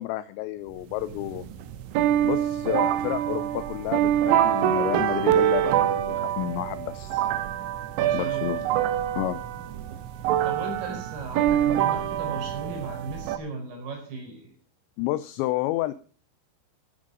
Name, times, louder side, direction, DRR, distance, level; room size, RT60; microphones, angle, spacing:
voice 1, 0.0-1.5 2.2-7.3 8.1-8.7 9.2-9.4 15.0-15.9, left 15 dB, 80° left, 14 dB, 2.7 m, -30 dB
sound 1, 0.8-13.4, right 11 dB, 80° right, 3.3 m, -25 dB
voice 2, 8.0-8.5 10.4-14.5, right 3 dB, 55° right, 3 dB, 6.5 m, -36 dB
15.0 x 9.3 x 5.0 m, 0.39 s
omnidirectional pair, 5.6 m